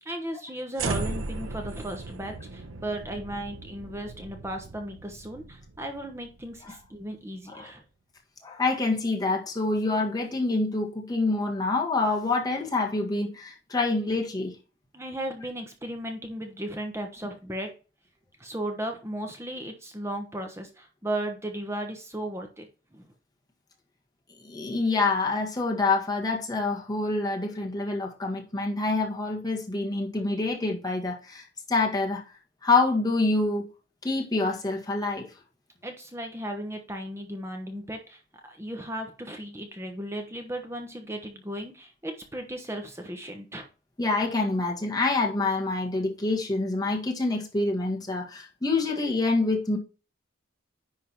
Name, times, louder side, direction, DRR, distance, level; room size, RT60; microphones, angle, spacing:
voice 1, 0.0-7.8 14.9-17.7 18.4-23.1 35.8-38.2 38.5-43.7, right 1 dB, 15° right, 1.0 m, -36 dB
sound 1, 0.8-7.1, right 3 dB, 80° right, 0.9 m, -37 dB
voice 2, 8.4-14.5 24.4-32.2 32.6-33.6 34.0-35.3 44.0-49.8, left 3 dB, 20° left, 1.8 m, -26 dB
10.5 x 3.8 x 4.5 m
head